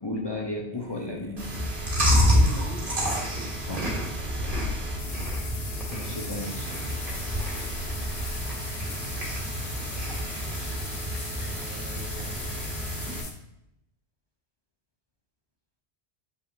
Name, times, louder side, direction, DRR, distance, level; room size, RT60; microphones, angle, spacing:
voice 1, 0.0-1.6 3.7-3.9 5.9-6.7, left 1 dB, 30° left, -1 dB, 0.6 m, -34 dB
voice 2, 0.7-1.7 2.2-3.0 4.4-4.6 6.7-7.9 11.3-13.1, right 2 dB, 75° right, 3 dB, 1.2 m, -45 dB
Chewing mastication, 1.4-13.2, equal, 50° right, 1.8 m, -28 dB
sound 1, 5.0-13.3, left 4 dB, 60° left, 1.0 m, -40 dB
6.9 x 5.7 x 2.6 m, 0.81 s
omnidirectional pair, 1.1 m